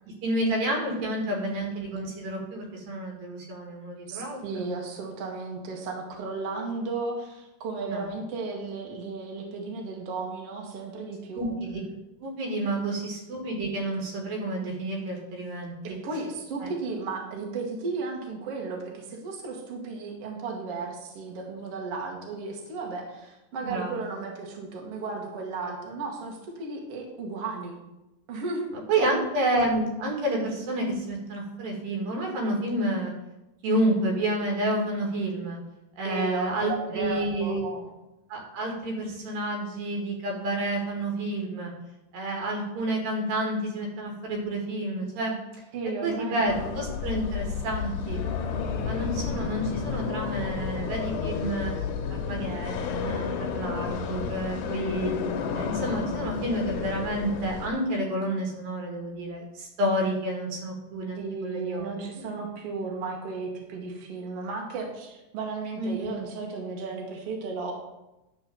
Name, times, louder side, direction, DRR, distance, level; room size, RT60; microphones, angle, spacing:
voice 1, 0.2-4.7 7.9-8.1 11.3-11.8 12.2-15.8 16.6-16.7 23.6-24.0 28.9-33.1 33.6-35.6 36.0-37.7 38.3-41.7 42.1-45.4 46.0-48.2 48.8-51.7 52.1-55.1 55.5-61.9 65.8-65.9, right 1 dB, 75° right, 1 dB, 3.6 m, -29 dB
voice 2, 4.1-11.5 15.8-27.8 28.3-28.7 29.0-29.1 36.0-37.9 45.7-46.5 61.2-67.7, right 4 dB, 50° right, 0 dB, 2.1 m, -34 dB
sound 1, 46.5-57.7, left 6 dB, 75° left, 2.3 m, -31 dB
11.5 x 4.0 x 6.9 m, 0.97 s
omnidirectional pair, 4.2 m